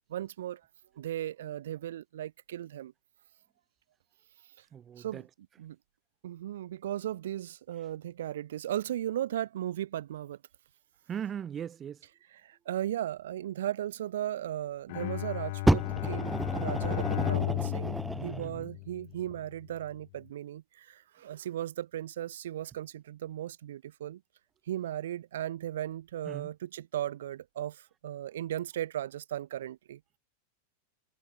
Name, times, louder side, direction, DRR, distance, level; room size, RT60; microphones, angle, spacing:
voice 1, 0.1-0.7 0.9-2.9 4.4-4.7 5.0-5.2 5.6-5.8 6.2-10.4 12.4-24.2 24.6-30.0, right 12 dB, 60° right, 1.4 m, -36 dB
voice 2, 4.7-5.3 11.1-12.1 18.1-18.7 26.2-26.5, right 8 dB, 25° right, 2.5 m, -39 dB
Bowed string instrument, 14.9-19.3, left 23 dB, 50° left, 1.3 m, -34 dB
Fire, 15.7-18.5 19.3-19.4, right 1 dB, 5° right, 0.4 m, -30 dB
figure-of-eight pair, 90°, 0 cm